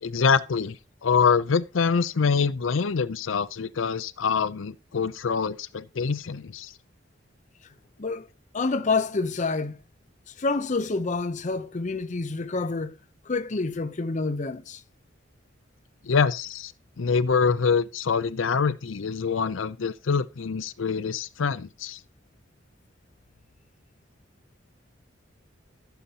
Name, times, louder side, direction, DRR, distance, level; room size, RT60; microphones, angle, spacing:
voice 1, 0.0-6.7 16.0-16.7 17.0-22.0, left 5 dB, 80° left, 0.5 m, -25 dB
voice 2, 8.5-9.8 10.3-13.0 13.2-14.8, left 3 dB, 40° left, 0.7 m, -28 dB
15.5 x 6.9 x 2.9 m
head